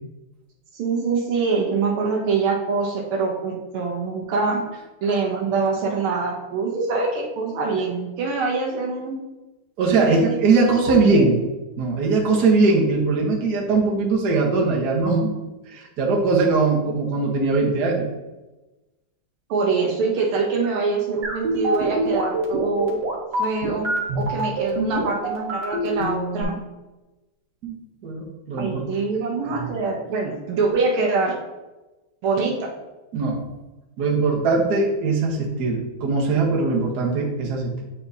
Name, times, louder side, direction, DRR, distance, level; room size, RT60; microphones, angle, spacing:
voice 1, 0.7-4.6 5.0-9.2 9.9-11.3 19.5-23.0 23.4-26.6 28.6-31.3 32.2-32.7, right 4 dB, 80° right, 0 dB, 1.7 m, -24 dB
voice 2, 9.8-11.4 11.8-15.3 15.7-18.1 27.6-27.8 28.0-28.8 29.5-29.7 33.1-33.5 34.0-37.8, right 3 dB, 55° right, -1 dB, 1.5 m, -21 dB
sound 1, 21.2-26.4, right 1 dB, 40° right, 1.0 m, -25 dB
8.4 x 4.4 x 2.6 m, 1.1 s
omnidirectional pair, 2.4 m